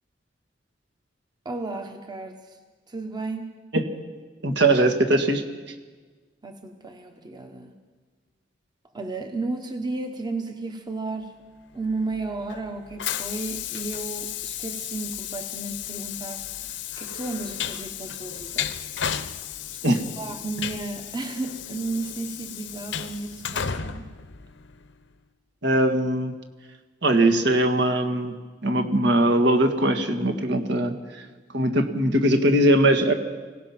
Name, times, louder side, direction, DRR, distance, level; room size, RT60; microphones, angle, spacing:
voice 1, 1.4-2.6 2.9-3.5 6.4-7.7 8.9-11.4 11.7-16.4 17.0-18.7 19.7-24.1, right 3 dB, 25° right, 5 dB, 1.2 m, -33 dB
voice 2, 4.4-5.4 19.8-20.0 25.6-26.3 27.0-28.4 28.6-31.3 31.5-33.1, right 1 dB, 65° right, 6 dB, 1.8 m, -21 dB
Train, 11.9-25.0, left 9 dB, 70° left, 0.9 m, -34 dB
25.5 x 17.0 x 6.0 m, 1.4 s
head